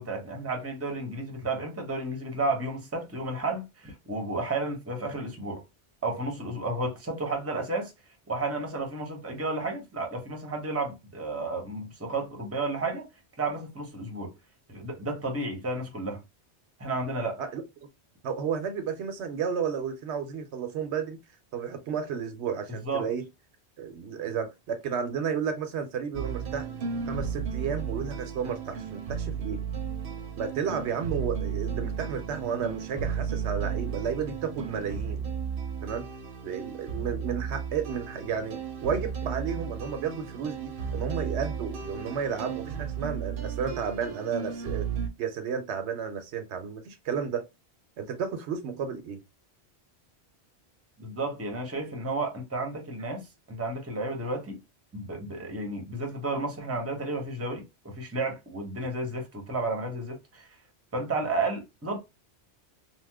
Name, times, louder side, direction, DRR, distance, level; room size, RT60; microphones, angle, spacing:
voice 1, 0.0-5.6 6.0-7.9 8.3-13.1 13.4-14.3 14.7-16.2 16.8-17.4 22.8-23.1 51.0-54.6 54.9-60.6 60.9-62.0, right 2 dB, 15° right, 0.6 m, -32 dB
voice 2, 18.2-21.2 21.5-23.2 23.8-26.7 27.1-29.6 30.4-35.2 35.8-36.1 36.4-44.9 45.2-47.5 48.0-49.2, right 6 dB, 85° right, 0.9 m, -32 dB
sound 1, 26.1-45.1, right 7 dB, 60° right, 0.7 m, -34 dB
2.9 x 2.0 x 3.4 m
omnidirectional pair, 1.1 m